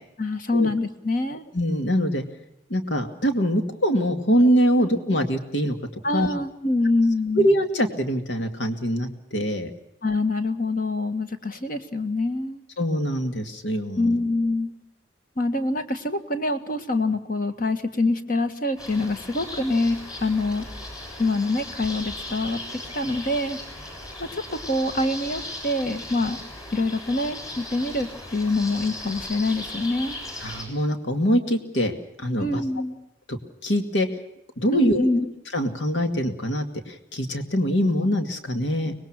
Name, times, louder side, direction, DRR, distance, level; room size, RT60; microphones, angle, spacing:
voice 1, 0.2-1.4 4.8-5.0 6.0-7.5 10.0-12.6 14.0-14.7 15.4-20.7 21.2-23.6 24.2-26.4 26.7-30.1 32.4-33.0 34.7-35.3, left 2 dB, 50° left, 8 dB, 1.9 m, -25 dB
voice 2, 1.5-2.2 2.7-5.8 6.1-6.3 7.3-9.7 12.8-14.1 30.4-32.6 33.3-34.1 34.6-35.1 35.5-38.9, equal, 80° left, 6 dB, 2.3 m, -23 dB
sound 1, 18.8-30.6, left 1 dB, 20° left, 7.2 m, -37 dB
25.0 x 20.5 x 6.1 m, 0.80 s
head